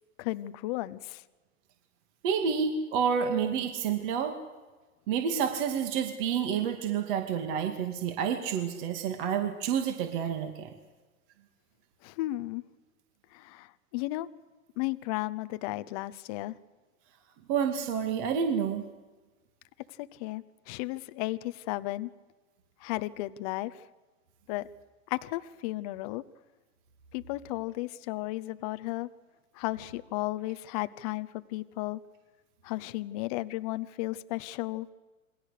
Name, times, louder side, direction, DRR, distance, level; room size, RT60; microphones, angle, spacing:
voice 1, 0.2-1.2 12.0-12.6 13.3-14.3 14.8-16.5 20.1-22.1 22.8-23.8 24.5-24.7 25.1-26.2 27.1-29.1 29.5-32.0 32.6-34.9, left 18 dB, 25° left, 13 dB, 0.7 m, -34 dB
voice 2, 2.2-4.4 5.1-10.7 17.5-18.8, right 7 dB, 40° right, 5 dB, 2.3 m, -29 dB
28.0 x 22.5 x 6.6 m, 1.2 s
hypercardioid pair, 150°, 42 cm